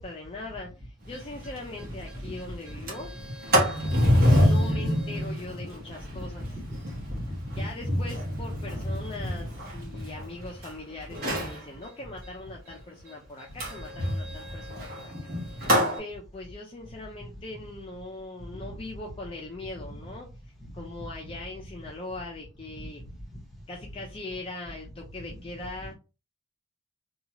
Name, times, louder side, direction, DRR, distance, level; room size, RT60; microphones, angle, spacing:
voice 1, 0.0-3.3 4.2-6.6 7.6-15.6 16.0-20.3 20.7-23.0 23.7-25.9, left 2 dB, 25° left, 0.5 m, -40 dB
Sliding door, 1.1-1.2 1.6-1.7 2.0-2.3 2.7-10.7 11.1-11.6 13.6-16.0, equal, 50° right, 1.1 m, -27 dB
voice 2, 6.3-7.6 9.3-9.5 15.6-15.7, equal, ahead, 0.9 m, -39 dB
2.7 x 2.3 x 2.8 m
head